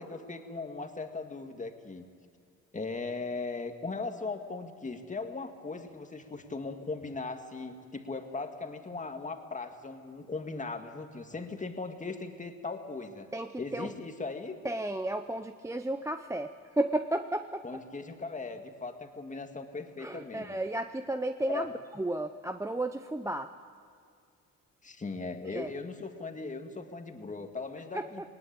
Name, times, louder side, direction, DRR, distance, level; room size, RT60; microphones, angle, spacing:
voice 1, 0.0-2.1 2.7-13.3 13.6-14.6 17.6-20.6 21.5-21.7 24.8-28.2, left 3 dB, 25° left, 6 dB, 2.0 m, -38 dB
voice 2, 13.3-13.9 14.6-17.6 20.0-23.5 25.5-25.7 27.9-28.1, right 1 dB, 10° right, 8 dB, 0.7 m, -33 dB
19.5 x 19.0 x 8.8 m, 2.3 s
cardioid pair, 90°, 30 cm